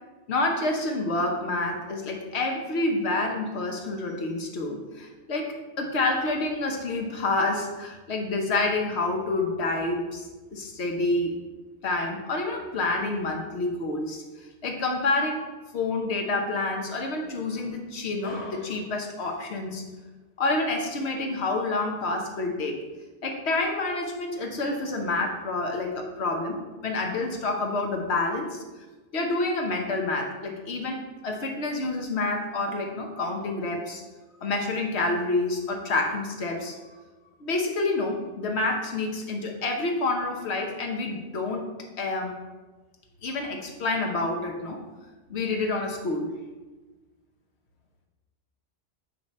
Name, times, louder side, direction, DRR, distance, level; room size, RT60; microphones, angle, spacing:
voice 1, 0.3-11.3 11.8-15.4 15.7-19.8 20.4-22.8 23.2-28.6 29.1-34.0 34.4-36.7 37.4-41.7 42.0-42.4 43.2-44.8 45.3-46.3, left 2 dB, 75° left, 2 dB, 1.2 m, -28 dB
9.4 x 3.3 x 4.2 m, 1.2 s
omnidirectional pair, 1.1 m